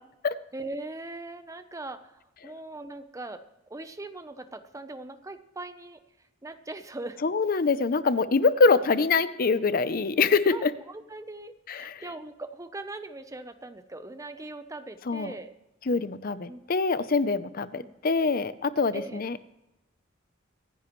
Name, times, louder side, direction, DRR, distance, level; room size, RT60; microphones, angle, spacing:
voice 1, 0.5-3.4 3.7-6.0 6.4-7.2 10.5-15.5 16.5-16.6 17.8-17.9 18.9-19.2, right 2 dB, 15° right, 10 dB, 0.8 m, -40 dB
voice 2, 7.2-10.7 11.7-12.0 15.1-15.3 15.9-19.4, left 4 dB, 45° left, 14 dB, 0.6 m, -24 dB
24.5 x 10.0 x 3.1 m, 0.94 s
head